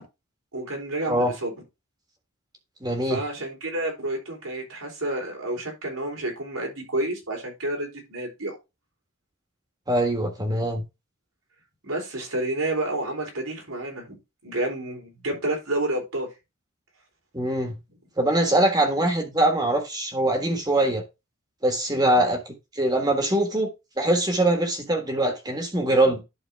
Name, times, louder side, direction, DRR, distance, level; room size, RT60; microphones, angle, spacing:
voice 1, 0.5-1.5 3.0-8.6 11.8-16.3, right 1 dB, 90° right, 3.7 m, -30 dB
voice 2, 2.8-3.2 9.9-10.8 17.3-17.8 18.2-21.0 21.6-23.7 24.0-26.2, right 1 dB, 20° right, 1.5 m, -23 dB
11.0 x 4.3 x 3.5 m
head